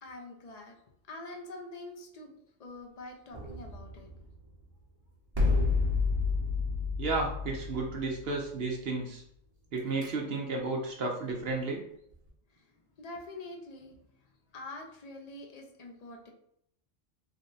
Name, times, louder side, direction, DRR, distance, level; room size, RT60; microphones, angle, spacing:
voice 1, 0.0-0.8 1.1-4.1 12.5-12.7 13.0-16.3, left 2 dB, 50° left, 1 dB, 0.4 m, -46 dB
sound 1, 3.3-4.6 5.3-8.7 9.8-10.1, left 4 dB, 20° right, 0.9 m, -30 dB
voice 2, 7.0-9.2 9.7-11.8, right 3 dB, 60° right, 0 dB, 0.8 m, -32 dB
3.4 x 2.1 x 3.9 m, 0.73 s
omnidirectional pair, 1.3 m